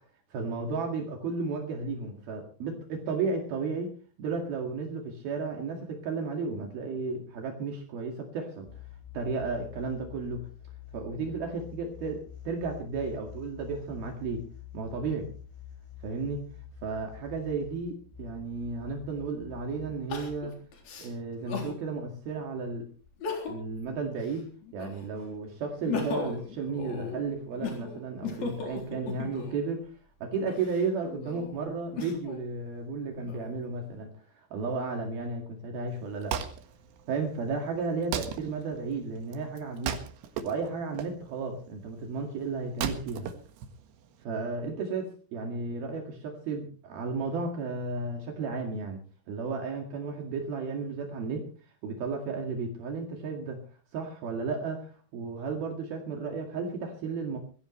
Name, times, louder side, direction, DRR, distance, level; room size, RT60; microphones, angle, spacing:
voice 1, 0.3-3.9 4.2-8.7 9.1-10.5 10.9-14.4 14.7-15.3 16.0-16.4 16.8-20.5 21.0-22.9 23.5-29.9 30.2-36.4 37.1-40.0 40.4-43.3 44.2-49.0 49.3-51.4 51.8-53.7 53.9-57.4, right 4 dB, 65° right, 2 dB, 3.9 m, -33 dB
sound 1, 8.7-20.5, left 9 dB, 35° left, 0.4 m, -47 dB
Crying sobbing, 18.7-18.8 20.1-21.8 22.3-22.4 23.1-23.8 24.1-25.2 25.6-29.6 30.3-32.4 33.0-33.8, left 4 dB, 65° left, 5.4 m, -37 dB
Wood, 35.9-44.2, right 8 dB, 85° right, 3.7 m, -38 dB
24.0 x 15.5 x 3.2 m, 0.38 s
omnidirectional pair, 4.7 m